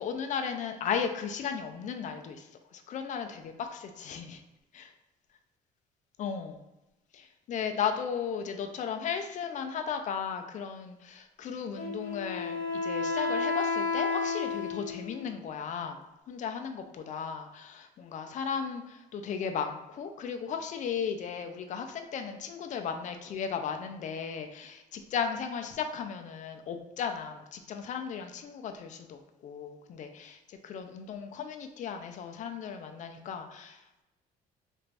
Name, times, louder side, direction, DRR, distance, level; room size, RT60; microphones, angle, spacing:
voice 1, 0.0-4.4 4.7-4.9 6.2-6.6 7.1-16.0 16.3-34.0, left 7 dB, 45° left, 6 dB, 0.4 m, -35 dB
Wind instrument woodwind instrument, 11.8-15.4, left 4 dB, 70° left, 1.1 m, -32 dB
3.2 x 2.5 x 3.3 m, 0.98 s
cardioid pair, 110°, 17 cm